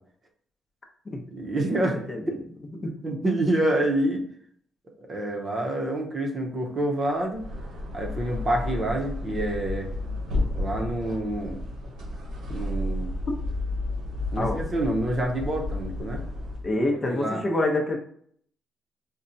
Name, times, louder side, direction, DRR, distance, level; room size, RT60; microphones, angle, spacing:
voice 1, 1.3-2.4 3.0-4.3 5.0-7.5 7.9-9.9 10.6-11.6 12.5-13.1 14.3-16.2 17.1-17.4, right 1 dB, 35° right, 1 dB, 0.7 m, -27 dB
sound 1, 7.3-16.8, left 2 dB, 85° right, 1.0 m, -32 dB
voice 2, 16.6-18.0, left 2 dB, 35° left, 1 dB, 0.7 m, -26 dB
4.2 x 2.2 x 2.6 m, 0.62 s
cardioid pair, 90°, 0 cm